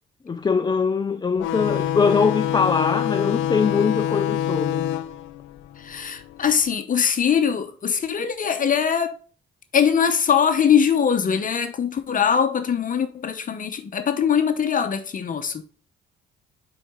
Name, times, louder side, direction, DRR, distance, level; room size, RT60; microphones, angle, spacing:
voice 1, 0.3-4.9, left 5 dB, 20° left, 0.4 m, -22 dB
sound 1, 1.4-6.6, left 11 dB, 85° left, 0.5 m, -26 dB
voice 2, 5.8-9.2 9.7-15.6, left 7 dB, 45° left, 0.9 m, -22 dB
4.9 x 4.7 x 5.0 m
cardioid pair, 90°, 20 cm